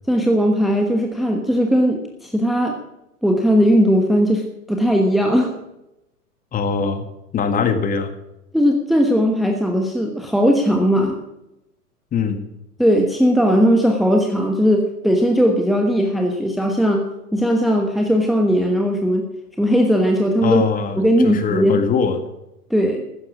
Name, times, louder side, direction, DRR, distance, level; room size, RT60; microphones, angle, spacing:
voice 1, 0.1-2.8 3.2-5.5 8.5-11.2 12.8-17.0 17.3-19.3 19.6-20.6 21.0-21.8 22.7-23.0, equal, ahead, 2 dB, 1.2 m, -18 dB
voice 2, 6.5-7.0 7.3-8.1 12.1-12.4 20.4-22.2, left 6 dB, 15° left, 7 dB, 1.8 m, -22 dB
15.0 x 12.5 x 6.1 m, 0.89 s
figure-of-eight pair, 105°, 47 cm